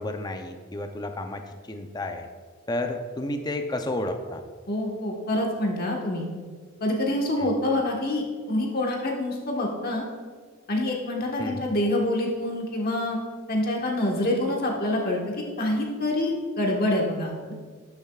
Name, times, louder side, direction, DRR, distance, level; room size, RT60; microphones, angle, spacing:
voice 1, 0.0-2.3 2.7-4.4 7.4-7.5 11.4-11.6, left 1 dB, 20° left, 6 dB, 0.6 m, -31 dB
voice 2, 4.7-6.3 6.8-10.0 10.7-13.2 13.5-17.5, left 1 dB, 50° left, -1 dB, 1.4 m, -26 dB
12.0 x 7.0 x 2.4 m, 1.5 s
head